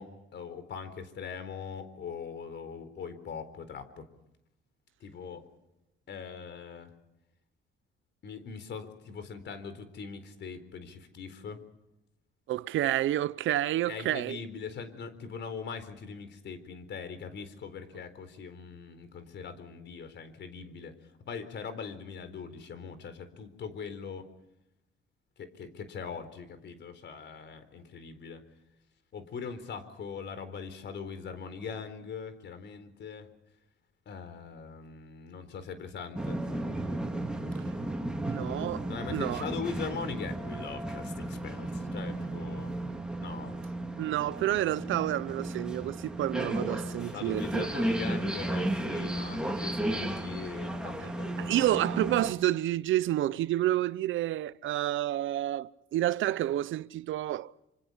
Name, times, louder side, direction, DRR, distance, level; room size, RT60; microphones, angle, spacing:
voice 1, 0.0-4.1 5.0-5.4 6.1-6.9 8.2-11.6 13.8-20.9 21.3-24.3 25.4-28.4 29.1-33.3 34.1-36.4 38.8-42.8 43.2-43.5 47.0-51.7, left 6 dB, 65° left, 4.1 m, -41 dB
voice 2, 12.5-14.4 38.3-39.4 44.0-47.6 51.4-57.5, right 14 dB, 80° right, 0.8 m, -29 dB
sound 1, 36.2-52.3, right 1 dB, 5° right, 4.2 m, -34 dB
26.5 x 26.5 x 5.7 m
cardioid pair, 90°, 20 cm